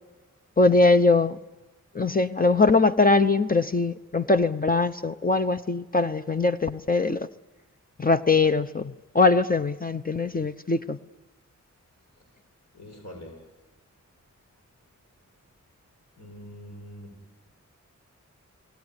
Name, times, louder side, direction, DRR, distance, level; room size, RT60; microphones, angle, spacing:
voice 1, 0.6-1.4 1.9-7.3 8.0-11.0, left 3 dB, 30° left, 9 dB, 0.8 m, -22 dB
voice 2, 12.7-13.4 16.2-17.1, equal, 60° left, 3 dB, 7.4 m, -43 dB
30.0 x 19.5 x 9.8 m, 1.2 s
wide cardioid pair, 70°, 30 cm